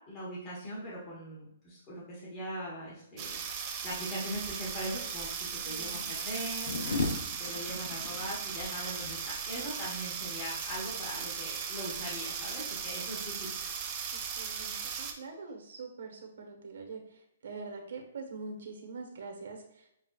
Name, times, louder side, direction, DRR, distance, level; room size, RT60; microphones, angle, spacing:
voice 1, 0.1-13.5, equal, 15° left, -8 dB, 1.2 m, -41 dB
sound 1, 3.2-15.1, right 6 dB, 25° right, 0.4 m, -37 dB
voice 2, 5.5-6.1 6.8-7.1 14.1-20.0, right 4 dB, 70° right, 3 dB, 1.1 m, -44 dB
sound 2, 5.9-11.0, left 3 dB, 65° left, 0.6 m, -37 dB
6.9 x 2.4 x 2.3 m, 0.80 s
hypercardioid pair, 165°, 0 cm